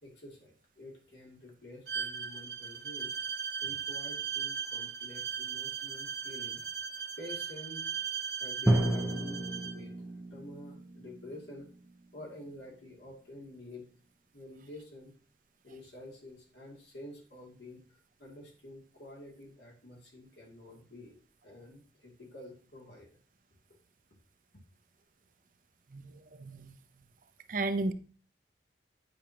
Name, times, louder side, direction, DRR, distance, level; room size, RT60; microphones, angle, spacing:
voice 1, 0.0-3.2 3.6-6.6 7.2-7.9 8.4-11.7 12.1-13.9 14.3-15.1 15.6-21.2 21.4-23.1 24.5-24.6, left 1 dB, 75° left, 2.5 m, -49 dB
Bowed string instrument, 1.9-9.8, right 7 dB, 70° right, 1.0 m, -38 dB
Drum, 8.7-12.4, right 1 dB, 10° right, 0.6 m, -32 dB
voice 2, 25.9-26.8 27.5-27.9, right 2 dB, 45° right, 0.5 m, -34 dB
9.2 x 6.1 x 2.9 m
head